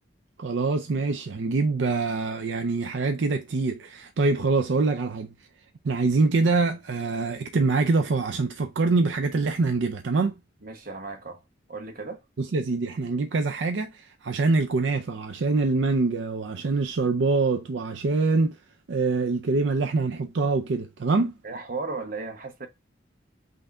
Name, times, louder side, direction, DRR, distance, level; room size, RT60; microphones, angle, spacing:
voice 1, 0.4-5.3 5.8-10.4 12.4-18.6 18.9-21.3, right 3 dB, 70° right, 0.5 m, -24 dB
voice 2, 10.6-11.4 11.7-12.2 21.4-22.7, right 3 dB, 50° right, 0.9 m, -35 dB
5.7 x 2.7 x 3.5 m
head